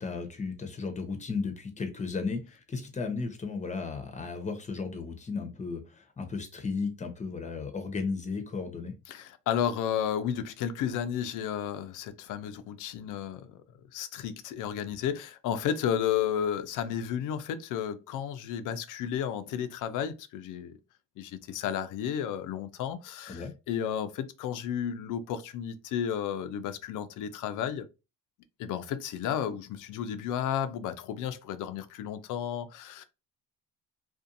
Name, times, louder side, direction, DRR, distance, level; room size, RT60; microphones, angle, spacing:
voice 1, 0.0-8.9 23.3-23.5, left 4 dB, 20° left, 0.8 m, -35 dB
voice 2, 9.1-13.6 13.9-20.8 21.2-27.9 28.6-33.0, left 9 dB, 70° left, 0.5 m, -32 dB
2.6 x 2.4 x 2.5 m
supercardioid pair, 75°, 33 cm